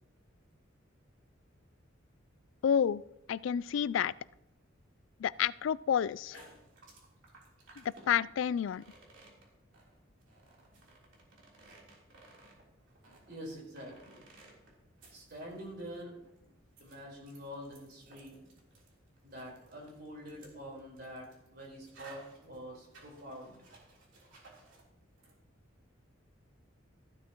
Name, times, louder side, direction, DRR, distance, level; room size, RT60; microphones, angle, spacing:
voice 1, 2.6-3.0 3.3-4.1 5.2-6.5 7.8-8.8, left 8 dB, 65° left, 20 dB, 0.3 m, -30 dB
sound 1, 6.1-24.9 25.2-25.3, right 3 dB, 65° right, 3.4 m, -58 dB
voice 2, 13.2-14.2 15.1-16.1 16.8-18.4 19.2-23.6, equal, 50° right, -1 dB, 4.4 m, -46 dB
15.0 x 12.5 x 3.0 m, 0.86 s
head